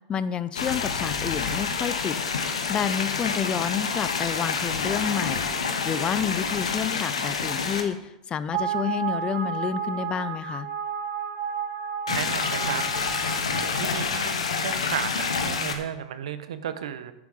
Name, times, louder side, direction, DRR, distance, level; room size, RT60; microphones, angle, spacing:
voice 1, 0.1-2.2 2.7-5.5 5.8-8.0 8.3-10.7, left 8 dB, 30° left, 16 dB, 0.5 m, -29 dB
sound 1, 0.6-7.8 12.1-15.8, left 5 dB, 85° left, 1.1 m, -28 dB
sound 2, 8.5-13.7, right 7 dB, 50° right, 1.3 m, -31 dB
voice 2, 12.1-12.8 13.8-17.1, right 9 dB, 75° right, 12 dB, 0.8 m, -33 dB
10.0 x 7.0 x 4.8 m, 0.91 s
hypercardioid pair, 95°, 3 cm